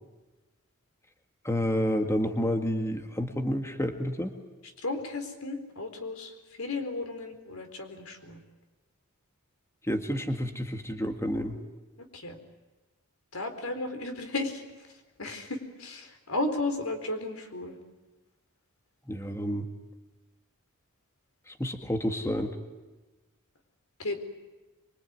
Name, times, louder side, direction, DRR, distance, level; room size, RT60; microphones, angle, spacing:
voice 1, 1.4-4.3 9.9-11.6 19.1-19.7 21.5-22.5, equal, 15° left, 5 dB, 1.9 m, -29 dB
voice 2, 4.8-6.3 6.6-8.4 12.1-12.4 13.3-14.6 15.2-17.8 24.0-24.1, left 2 dB, 85° left, 6 dB, 4.2 m, -34 dB
24.5 x 24.0 x 9.6 m, 1.2 s
head